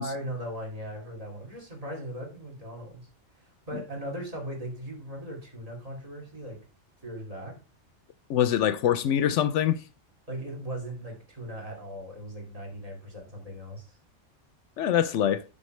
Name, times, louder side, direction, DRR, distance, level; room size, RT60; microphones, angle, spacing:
voice 1, 0.0-3.1 3.7-6.6 7.0-7.6 10.3-13.9, right 1 dB, 30° right, 2.6 m, -38 dB
voice 2, 8.3-9.8 14.8-15.4, left 10 dB, 75° left, 0.9 m, -24 dB
9.3 x 6.0 x 3.2 m
omnidirectional pair, 1.2 m